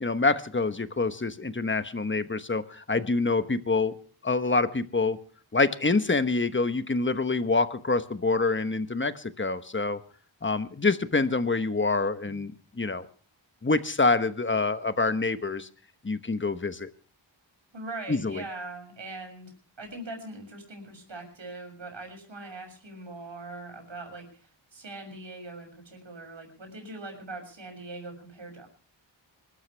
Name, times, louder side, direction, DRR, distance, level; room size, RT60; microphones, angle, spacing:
voice 1, 0.0-3.9 4.2-5.2 5.5-10.0 10.4-13.1 13.6-15.7 16.0-16.9 18.1-18.4, left 3 dB, 25° left, 11 dB, 1.1 m, -26 dB
voice 2, 17.7-19.5 19.8-24.3 24.7-28.7, right 2 dB, 70° right, 3 dB, 6.9 m, -41 dB
26.0 x 13.0 x 3.4 m, 0.40 s
wide cardioid pair, 85°, 47 cm